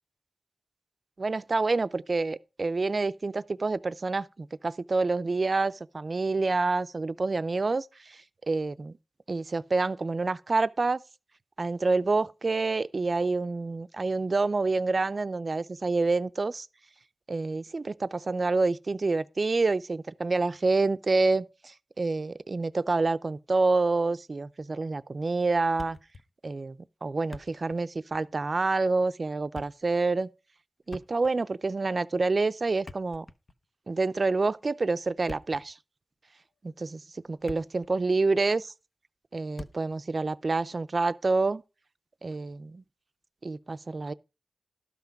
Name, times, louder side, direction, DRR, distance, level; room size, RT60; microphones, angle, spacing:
voice 1, 1.2-8.2 8.5-8.9 9.3-11.0 11.6-16.7 17.3-26.0 26.4-30.3 30.9-33.3 33.9-35.8 36.6-37.0 37.3-38.7 39.3-41.6 42.2-42.8 43.4-44.1, right 3 dB, 50° right, 0.5 m, -27 dB
Thump thud, 25.8-26.3 26.6-26.7 27.1-27.9 28.1-28.3 29.3-29.9 30.9-31.5 32.7-33.7 35.1-35.7 36.4-36.6 37.1-37.9 38.2-38.3 39.6-40.0, left 3 dB, 50° left, 0.8 m, -45 dB
12.5 x 5.9 x 5.1 m
wide cardioid pair, 70°, 0 cm